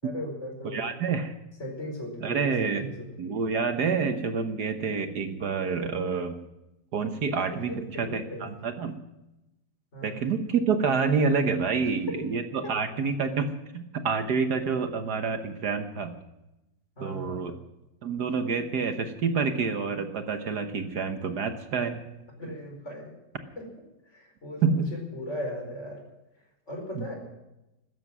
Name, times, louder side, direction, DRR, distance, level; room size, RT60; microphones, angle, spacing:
voice 1, 0.0-0.8 1.6-3.4 7.5-8.4 9.9-10.2 12.6-12.7 17.0-17.4 22.4-23.1 23.5-23.7 24.1-26.0 26.7-27.1, equal, 40° left, 1 dB, 5.0 m, -37 dB
voice 2, 0.7-1.3 2.2-2.8 3.2-6.4 6.9-7.7 8.0-8.9 10.0-13.5 13.7-16.2 17.0-17.5 18.0-22.0 24.6-24.9 26.9-27.1, right 5 dB, 65° right, 7 dB, 1.6 m, -28 dB
16.0 x 13.0 x 6.1 m, 0.93 s
omnidirectional pair, 1.9 m